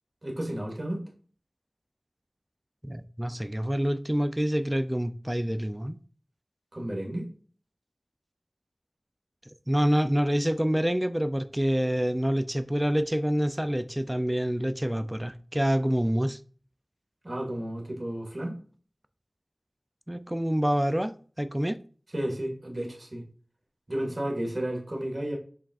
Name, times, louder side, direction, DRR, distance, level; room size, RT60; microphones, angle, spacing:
voice 1, 0.2-1.0 6.7-7.3 17.2-18.6 22.1-23.2 23.9-25.4, right 1 dB, 50° right, 2.2 m, -32 dB
voice 2, 2.8-6.0 9.7-16.4 20.1-21.8, equal, 15° right, 0.5 m, -27 dB
7.3 x 4.9 x 2.6 m
wide cardioid pair, 55°, 0 cm